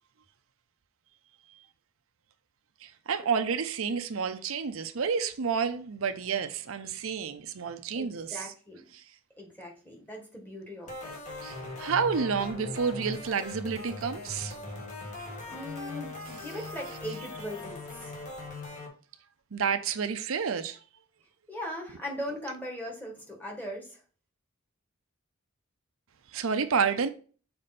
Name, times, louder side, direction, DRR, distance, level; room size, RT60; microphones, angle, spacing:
voice 1, 2.8-8.5 8.9-9.0 11.4-14.6 19.5-20.8 26.3-27.1, right 6 dB, 75° right, 0.6 m, -30 dB
voice 2, 7.9-8.8 9.4-11.3 15.5-18.2 21.5-24.0, equal, 10° left, 1.7 m, -39 dB
sound 1, 10.9-18.9, left 2 dB, 40° left, 1.7 m, -40 dB
6.6 x 4.3 x 4.2 m
head